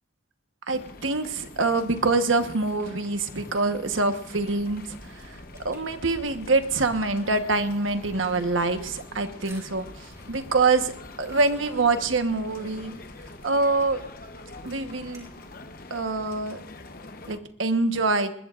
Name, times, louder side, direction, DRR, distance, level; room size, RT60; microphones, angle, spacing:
sound 1, 0.7-17.4, left 2 dB, 45° left, 0.9 m, -45 dB
voice 1, 0.7-5.4 5.6-12.9 13.4-14.0 14.6-15.3 15.9-16.6 17.3-18.3, right 3 dB, 85° right, 8 dB, 1.2 m, -25 dB
sound 2, 4.3-15.7, right 1 dB, 15° right, 3.3 m, -50 dB
20.5 x 20.0 x 2.5 m, 0.73 s
head